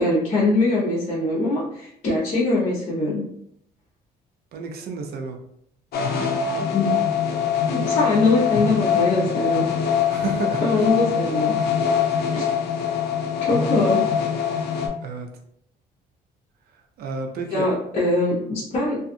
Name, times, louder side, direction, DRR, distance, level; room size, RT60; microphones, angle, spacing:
voice 1, 0.0-3.2 6.6-6.9 7.7-9.7 10.6-11.5 12.3-12.4 13.4-14.0 17.5-19.0, left 2 dB, 45° left, -8 dB, 0.9 m, -22 dB
voice 2, 4.5-5.4 10.1-10.6 15.0-15.3 17.0-17.7, right 4 dB, 65° right, 3 dB, 0.6 m, -30 dB
sound 1, 5.9-14.9, left 7 dB, 65° left, 0.5 m, -23 dB
2.5 x 2.5 x 2.5 m, 0.71 s
cardioid pair, 110°, 17 cm